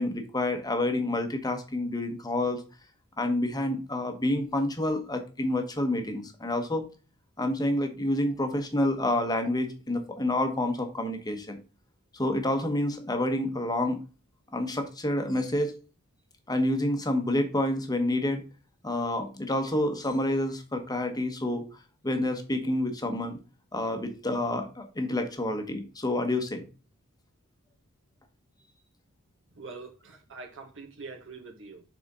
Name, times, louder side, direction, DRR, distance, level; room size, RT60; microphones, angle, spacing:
voice 1, 0.0-2.6 3.2-6.9 7.4-11.6 12.1-14.0 14.5-15.7 16.5-18.4 18.8-21.7 22.0-23.4 23.7-26.6, left 1 dB, 15° left, 1.1 m, -28 dB
voice 2, 29.6-31.8, right 4 dB, 60° right, 1.5 m, -44 dB
6.6 x 4.3 x 3.7 m
head